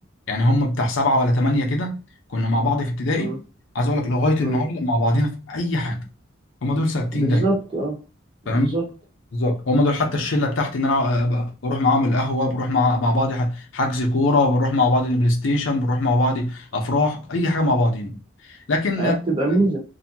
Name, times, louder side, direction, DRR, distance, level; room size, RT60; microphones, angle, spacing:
voice 1, 0.3-1.9 2.3-3.4 3.7-6.0 6.6-7.5 8.5-8.7 9.3-18.1 18.7-19.2, left 1 dB, 70° left, 0.7 m, -21 dB
voice 2, 7.1-8.0 8.4-8.8 19.0-19.8, right 2 dB, 25° right, 1.0 m, -23 dB
2.7 x 2.2 x 2.7 m
head